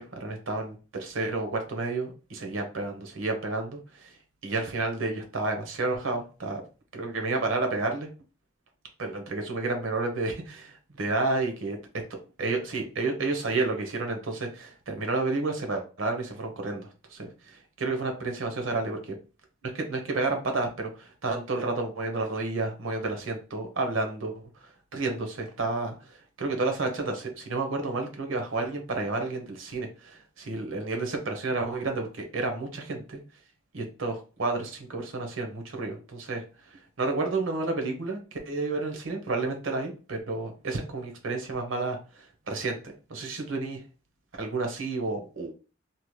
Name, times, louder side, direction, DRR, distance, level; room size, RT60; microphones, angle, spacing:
voice 1, 0.0-4.2 4.4-6.6 6.9-8.1 9.0-11.8 12.4-19.0 19.6-33.2 33.7-42.8 43.1-43.8 44.3-45.6, right 3 dB, 80° right, 4 dB, 0.8 m, -31 dB
2.8 x 2.1 x 3.1 m, 0.34 s
head